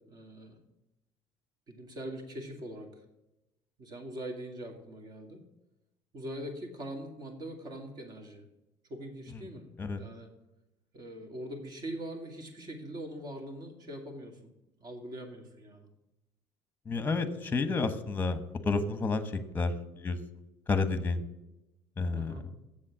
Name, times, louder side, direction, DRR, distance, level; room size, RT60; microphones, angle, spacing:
voice 1, 0.1-0.6 1.7-2.9 3.8-5.4 6.1-8.4 8.9-9.7 10.0-10.3 10.9-14.4 14.8-15.9 22.1-22.5, right 1 dB, 40° right, 4 dB, 2.5 m, -42 dB
voice 2, 16.9-20.2 20.7-21.2 22.0-22.3, left 4 dB, 20° left, 11 dB, 1.1 m, -30 dB
7.5 x 7.5 x 7.4 m, 0.93 s
cardioid pair, 130°, 10 cm